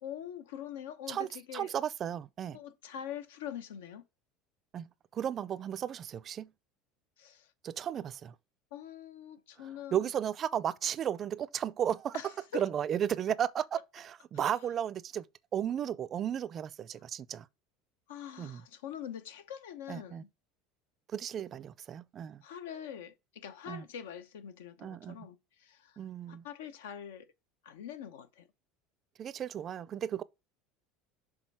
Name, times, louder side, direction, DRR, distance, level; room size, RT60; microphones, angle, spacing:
voice 1, 0.0-1.7 2.5-4.0 7.2-7.5 8.7-10.1 12.1-12.6 18.1-20.3 22.4-26.0 26.3-27.3 27.6-28.5, left 9 dB, 85° left, 0.8 m, -44 dB
voice 2, 1.1-2.6 4.7-6.5 7.6-8.3 9.6-15.2 15.5-17.5 18.4-18.6 19.9-20.2 21.1-22.4 23.7-23.8 24.8-25.3 26.0-26.4 29.2-30.2, right 9 dB, 40° right, 0.4 m, -34 dB
6.4 x 3.7 x 4.7 m
supercardioid pair, 100°, 0 cm